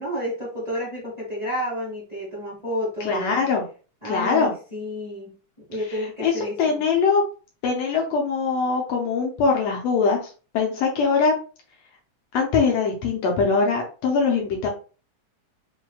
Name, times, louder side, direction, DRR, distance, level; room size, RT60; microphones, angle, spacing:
voice 1, 0.0-3.4 4.0-5.3 5.7-6.8, equal, 80° right, -6 dB, 0.3 m, -30 dB
voice 2, 3.0-3.6 4.1-4.5 6.2-7.2 7.6-11.3 12.3-14.7, left 5 dB, 75° left, 0 dB, 1.6 m, -22 dB
5.9 x 2.7 x 2.3 m, 0.36 s
omnidirectional pair, 3.6 m